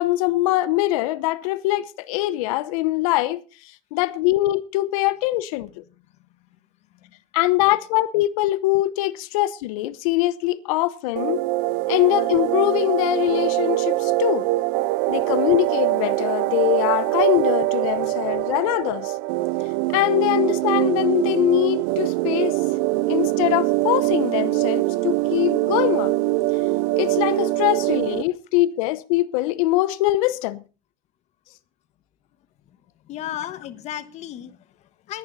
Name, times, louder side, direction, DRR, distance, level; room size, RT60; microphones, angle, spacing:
voice 1, 0.0-3.4 3.9-5.8 7.3-11.4 11.9-14.5 15.1-19.2 19.9-22.6 23.1-26.2 26.9-30.6, left 17 dB, 80° left, 0.9 m, -22 dB
sound 1, 11.2-28.2, right 19 dB, 65° right, 0.6 m, -23 dB
voice 2, 33.0-35.2, left 12 dB, 40° left, 1.3 m, -36 dB
19.0 x 10.5 x 4.1 m
cardioid pair, 155°, 18 cm